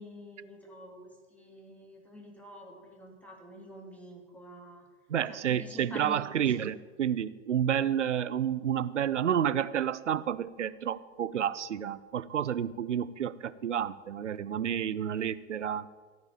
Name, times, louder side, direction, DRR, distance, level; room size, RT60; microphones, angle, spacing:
voice 1, 0.0-4.9 5.3-6.5, equal, 5° left, -1 dB, 3.1 m, -48 dB
voice 2, 5.1-15.9, right 9 dB, 85° right, 16 dB, 0.6 m, -30 dB
15.5 x 5.3 x 8.8 m, 1.5 s
hypercardioid pair, 100°, 35 cm